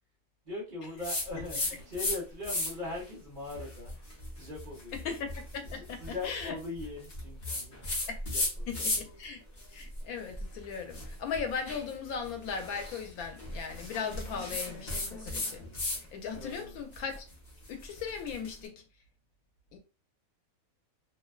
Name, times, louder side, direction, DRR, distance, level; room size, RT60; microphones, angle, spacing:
voice 1, 0.4-4.0 4.3-5.1 5.7-7.8 8.2-8.9 16.3-16.8, left 2 dB, 45° right, 0.8 m, -41 dB
sound 1, 1.0-2.2 2.4-2.9 3.5-9.2 9.6-16.0 16.3-18.5, left 2 dB, 40° left, 0.8 m, -36 dB
voice 2, 4.9-6.6 8.1-8.2 8.7-9.4 9.7-15.7 16.1-17.2 17.7-18.7 19.7-19.8, left 6 dB, 90° left, 1.1 m, -38 dB
2.7 x 2.1 x 2.2 m
omnidirectional pair, 1.5 m